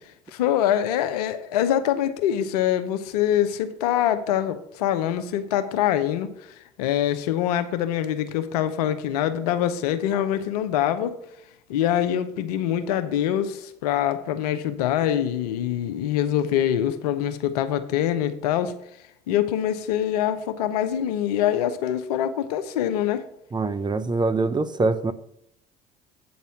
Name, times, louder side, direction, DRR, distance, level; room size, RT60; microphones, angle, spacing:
voice 1, 0.3-6.3 6.8-11.1 11.7-18.7 19.3-23.2, left 10 dB, 80° left, 0.7 m, -24 dB
voice 2, 23.5-25.1, right 3 dB, 20° right, 0.7 m, -24 dB
8.5 x 4.2 x 7.0 m
hypercardioid pair, 60°, 20 cm